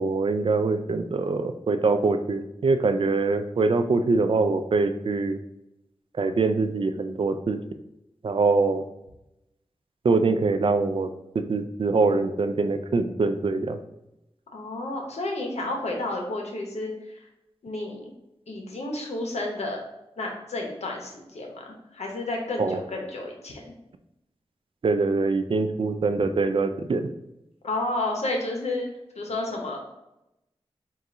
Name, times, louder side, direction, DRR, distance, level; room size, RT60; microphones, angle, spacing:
voice 1, 0.0-5.4 6.2-7.6 8.2-8.8 10.0-11.1 11.3-13.8 22.6-22.8 24.8-27.1, right 3 dB, 55° right, 8 dB, 0.4 m, -24 dB
voice 2, 14.5-17.3 17.6-18.1 18.5-19.8 20.2-23.7 27.6-28.9 29.2-29.8, left 2 dB, 80° left, 1 dB, 0.8 m, -31 dB
3.7 x 2.4 x 4.1 m, 0.88 s
wide cardioid pair, 55°, 11 cm